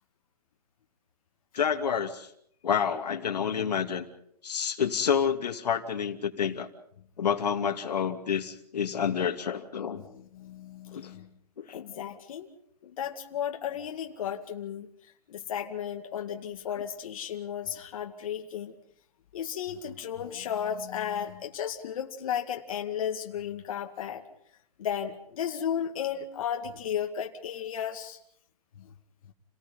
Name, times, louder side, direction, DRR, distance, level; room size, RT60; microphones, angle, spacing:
voice 1, 1.5-2.3 2.6-4.1 4.4-6.7 7.2-10.0 10.9-11.1 11.6-11.8 16.7-16.8, left 7 dB, 85° left, 5 dB, 2.7 m, -29 dB
voice 2, 10.1-11.3 11.7-12.5 12.8-14.9 15.3-18.7 19.3-24.2 24.8-28.2, left 9 dB, 55° left, 3 dB, 2.3 m, -34 dB
30.0 x 19.0 x 5.5 m, 0.68 s
hypercardioid pair, 160°, 20 cm